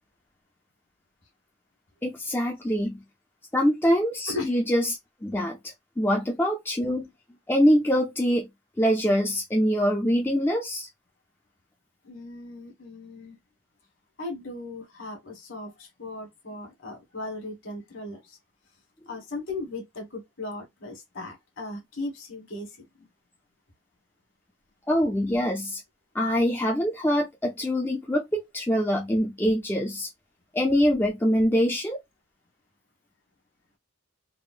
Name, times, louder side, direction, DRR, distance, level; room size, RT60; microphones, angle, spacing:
voice 1, 2.0-3.0 3.5-5.6 6.0-7.1 7.5-8.5 8.8-10.9 24.9-25.8 26.1-30.1 30.5-32.0, equal, 10° left, 0.4 m, -24 dB
voice 2, 12.0-13.4 14.2-18.4 19.1-23.1, left 2 dB, 60° left, 1.4 m, -37 dB
3.5 x 2.0 x 2.4 m
head